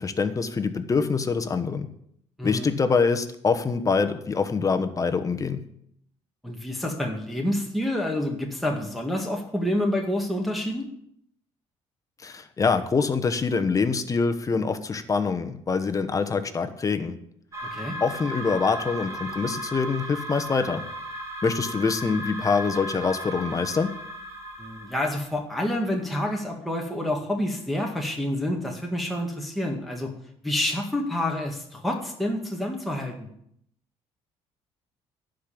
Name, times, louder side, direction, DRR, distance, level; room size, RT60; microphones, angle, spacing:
voice 1, 0.0-1.9 2.4-5.6 12.2-17.2 18.0-20.8 21.4-23.9, left 4 dB, 30° left, 9 dB, 1.1 m, -25 dB
voice 2, 2.4-2.8 6.4-10.9 17.7-18.0 24.6-30.1 30.4-33.3, left 1 dB, ahead, -1 dB, 1.9 m, -28 dB
sound 1, 17.5-25.2, right 1 dB, 25° right, 2.3 m, -35 dB
12.0 x 5.2 x 8.5 m, 0.70 s
cardioid pair, 100°, 12 cm